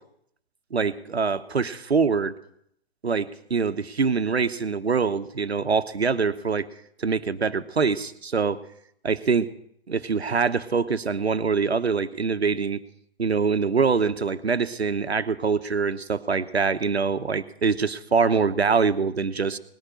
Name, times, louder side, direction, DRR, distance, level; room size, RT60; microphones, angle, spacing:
voice 1, 0.7-2.3 3.0-6.7 7.0-8.6 9.0-9.5 9.9-12.8 13.2-19.6, right 5 dB, 80° right, 12 dB, 1.0 m, -24 dB
19.0 x 6.7 x 9.8 m, 0.70 s
figure-of-eight pair, 125°, 31 cm